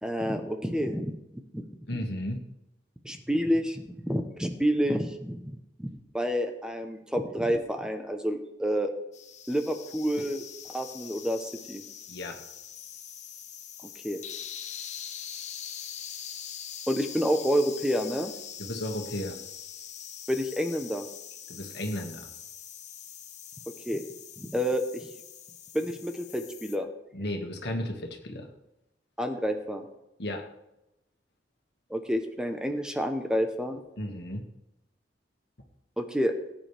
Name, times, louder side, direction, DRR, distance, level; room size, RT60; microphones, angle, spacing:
voice 1, 0.0-1.2 2.0-2.1 3.0-5.5 5.8-8.9 9.5-10.5 10.7-11.8 14.0-14.2 16.9-18.3 20.3-21.0 23.9-24.0 24.4-25.1 25.7-26.9 29.2-29.8 31.9-33.8 36.0-36.3, equal, 5° right, 5 dB, 0.9 m, -29 dB
voice 2, 1.9-2.4 12.1-12.4 18.6-19.4 21.5-22.3 27.1-28.5 30.2-30.5 34.0-34.5, left 1 dB, 65° left, 3 dB, 1.9 m, -34 dB
sound 1, 9.1-26.8, left 9 dB, 40° left, 0.9 m, -43 dB
18.5 x 9.1 x 3.5 m, 0.92 s
head